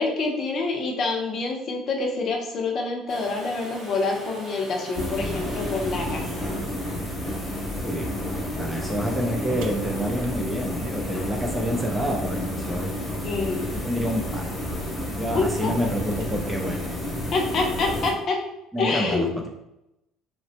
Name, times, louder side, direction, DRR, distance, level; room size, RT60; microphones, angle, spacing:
voice 1, 0.0-6.5 11.1-11.2 13.2-13.7 15.3-15.9 17.3-18.4 18.8-19.3, left 3 dB, 40° left, 1 dB, 0.5 m, -27 dB
Domestic sounds home sounds, 3.1-8.9 10.8-10.9, right 1 dB, 45° right, 0.9 m, -43 dB
sound 1, 4.9-18.1, left 1 dB, 10° left, 0.9 m, -30 dB
voice 2, 7.7-8.1 8.6-13.0 13.7-14.6 15.2-16.9 18.7-19.5, equal, 10° right, 1 dB, 0.3 m, -28 dB
sound 2, 9.6-11.8 13.7-13.8 14.6-14.8 15.3-16.8, right 2 dB, 80° right, 0.4 m, -43 dB
3.0 x 2.0 x 2.8 m, 0.90 s
cardioid pair, 145°, 0 cm